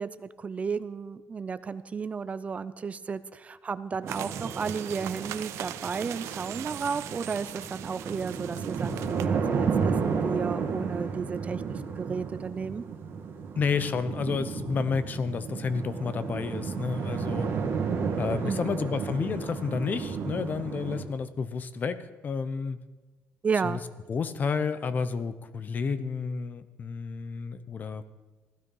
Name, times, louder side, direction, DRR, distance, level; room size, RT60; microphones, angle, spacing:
voice 1, 0.0-12.8 18.4-18.7 23.4-23.8, right 5 dB, 30° right, 14 dB, 0.4 m, -33 dB
sound 1, 4.0-21.0, right 5 dB, 60° right, 2.3 m, -32 dB
sound 2, 4.1-9.3, right 13 dB, 90° right, 0.6 m, -40 dB
voice 2, 13.6-17.5 18.2-22.8 23.6-23.8 24.1-28.0, left 5 dB, 40° left, 13 dB, 0.8 m, -30 dB
15.5 x 12.5 x 5.5 m, 1.2 s
cardioid pair, 140°, 5 cm